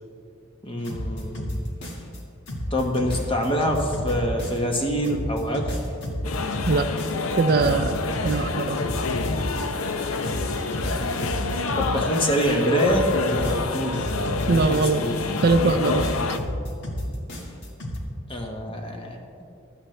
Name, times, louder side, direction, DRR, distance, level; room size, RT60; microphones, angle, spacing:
voice 1, 0.6-1.6 2.7-5.8 11.8-15.2 18.3-19.2, equal, 25° left, 2 dB, 1.3 m, -25 dB
sound 1, 0.8-2.2 2.5-4.8 5.0-9.9 10.2-12.5 12.8-15.1 15.4-18.0, equal, 55° left, 1.7 m, -31 dB
sound 2, 6.2-16.4, left 3 dB, 80° left, 0.7 m, -28 dB
voice 2, 7.4-8.8 14.5-15.0 15.4-16.1, right 3 dB, 45° right, 10 dB, 0.4 m, -21 dB
15.5 x 12.0 x 3.3 m, 2.6 s
head